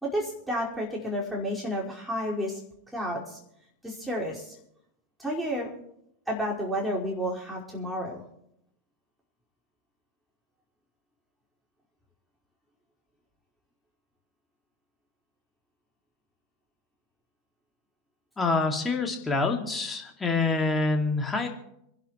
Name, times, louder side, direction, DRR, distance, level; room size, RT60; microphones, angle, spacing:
voice 1, 0.0-2.6 2.9-3.4 3.8-4.5 5.2-5.7 6.3-8.2, equal, 5° right, -4 dB, 5.0 m, -31 dB
voice 2, 18.4-21.5, left 3 dB, 15° left, 3 dB, 2.2 m, -26 dB
28.0 x 11.5 x 3.2 m, 0.76 s
figure-of-eight pair, 90°, 0 cm